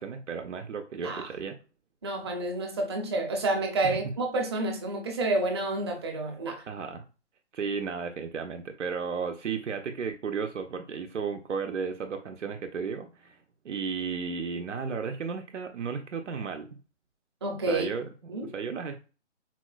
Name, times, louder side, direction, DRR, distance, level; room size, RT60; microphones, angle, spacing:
voice 1, 0.0-1.6 3.8-4.0 6.7-7.0 7.5-13.4 13.6-16.8 17.7-19.0, right 5 dB, 90° right, 0.6 m, -34 dB
voice 2, 2.0-6.6 17.4-17.9 18.3-18.5, right 2 dB, 25° right, 0.6 m, -29 dB
4.1 x 2.0 x 2.3 m
figure-of-eight pair, 150°, 35 cm